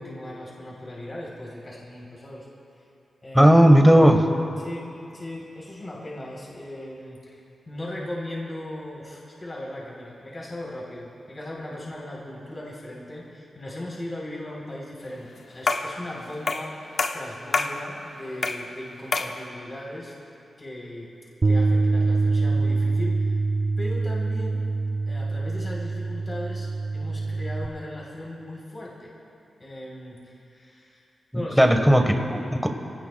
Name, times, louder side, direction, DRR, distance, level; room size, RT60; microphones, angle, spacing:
voice 1, 0.0-2.5 3.2-3.5 4.6-7.4 7.7-20.1 20.6-21.1 21.4-23.4 23.8-24.6 25.1-29.1 29.6-31.0 31.3-31.7, left 1 dB, 30° left, -4 dB, 3.9 m, -38 dB
voice 2, 3.3-4.3 31.6-32.7, equal, ahead, 4 dB, 1.5 m, -16 dB
sound 1, 15.7-16.0 16.5-16.7 17.0-17.8 18.4-18.7 19.1-19.4, left 4 dB, 60° left, 0.8 m, -26 dB
Bass guitar, 21.4-27.7, right 3 dB, 35° right, 0.7 m, -24 dB
26.0 x 18.0 x 2.4 m, 2.6 s
wide cardioid pair, 95°, 0 cm